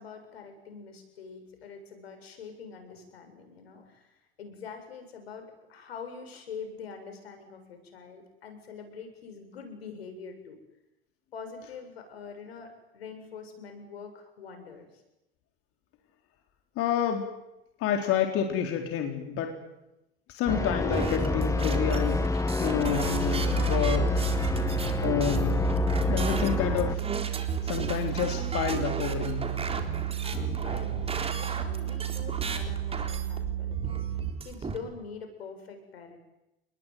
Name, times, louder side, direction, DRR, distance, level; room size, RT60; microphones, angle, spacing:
voice 1, 0.0-10.6 11.3-15.0 30.2-36.2, left 5 dB, 85° left, 6 dB, 7.2 m, -44 dB
voice 2, 16.8-17.2 17.8-19.6 20.3-24.3 25.0-25.7 26.1-27.0 27.6-29.4, left 8 dB, 50° left, 4 dB, 4.1 m, -29 dB
sound 1, 20.5-27.0, left 2 dB, 10° left, 1.5 m, -27 dB
sound 2, 20.9-34.8, right 4 dB, 20° right, 4.0 m, -36 dB
sound 3, 22.9-34.3, right 11 dB, 60° right, 3.0 m, -33 dB
28.0 x 21.0 x 9.5 m, 0.94 s
hypercardioid pair, 100°, 30 cm